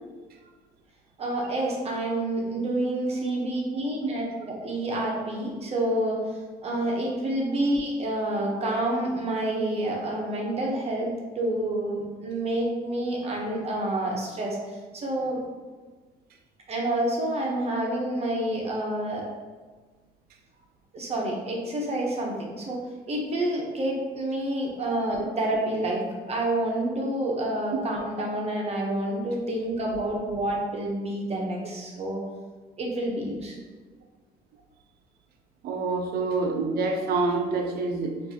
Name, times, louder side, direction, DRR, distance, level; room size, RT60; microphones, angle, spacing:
voice 1, 1.2-6.2 6.6-15.4 16.7-19.2 20.9-22.8 23.1-32.2 32.8-33.6, right 1 dB, 40° right, -1 dB, 0.9 m, -28 dB
voice 2, 35.6-38.2, right 3 dB, 65° right, 4 dB, 0.5 m, -27 dB
5.2 x 2.6 x 2.8 m, 1.4 s
cardioid pair, 110°, 17 cm